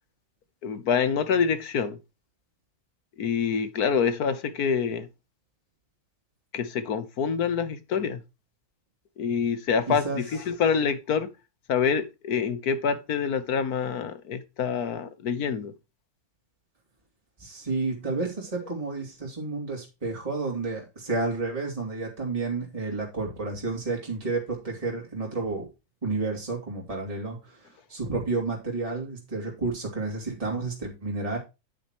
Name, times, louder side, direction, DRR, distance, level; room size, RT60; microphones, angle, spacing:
voice 1, 0.6-2.0 3.2-5.1 6.5-8.2 9.2-11.3 11.7-15.7, left 6 dB, 75° left, 1.5 m, -26 dB
voice 2, 9.9-10.2 17.4-25.7 26.0-31.4, right 3 dB, 20° right, 2.9 m, -31 dB
9.4 x 8.9 x 3.0 m
omnidirectional pair, 1.7 m